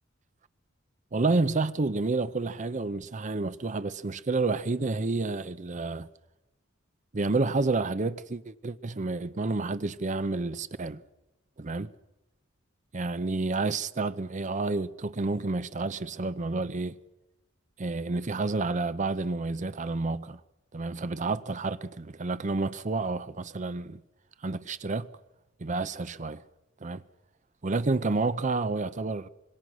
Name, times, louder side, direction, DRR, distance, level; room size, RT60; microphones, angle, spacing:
voice 1, 1.1-6.1 7.1-11.0 11.6-11.9 12.9-16.9 17.8-20.4 20.7-24.0 24.4-25.1 25.6-26.4 26.8-27.0 27.6-29.3, right 3 dB, 40° right, 0.7 m, -29 dB
26.0 x 22.0 x 6.2 m
head